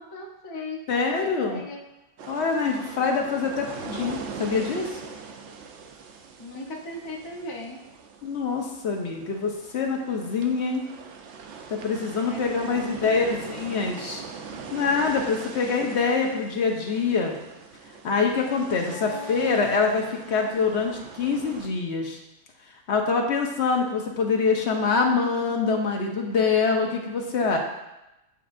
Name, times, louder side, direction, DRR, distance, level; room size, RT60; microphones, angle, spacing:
voice 1, 0.0-1.8 3.7-3.9 6.4-7.8 12.2-13.4 15.1-15.8 18.9-19.7, left 2 dB, 25° left, 0 dB, 0.5 m, -39 dB
voice 2, 0.9-1.6 2.3-4.9 8.2-10.8 11.7-14.2 14.7-17.3 18.0-22.2 22.9-27.6, left 4 dB, 65° left, 2 dB, 1.0 m, -25 dB
sound 1, 2.2-21.7, right 5 dB, 70° right, 0.8 m, -41 dB
8.6 x 4.4 x 2.5 m, 0.94 s
omnidirectional pair, 1.3 m